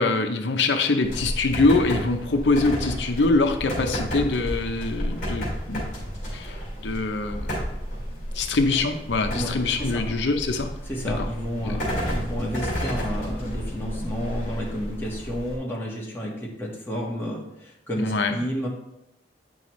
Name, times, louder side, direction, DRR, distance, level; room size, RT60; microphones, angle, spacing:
voice 1, 0.0-5.8 6.3-7.5 8.3-10.7 11.2-11.3 11.6-11.8 18.0-18.4, left 3 dB, 90° left, 5 dB, 0.7 m, -24 dB
sound 1, 1.0-15.5, equal, 45° left, 3.1 m, -31 dB
voice 2, 10.8-18.7, equal, 15° left, -4 dB, 1.5 m, -31 dB
9.3 x 5.5 x 3.1 m, 0.83 s
head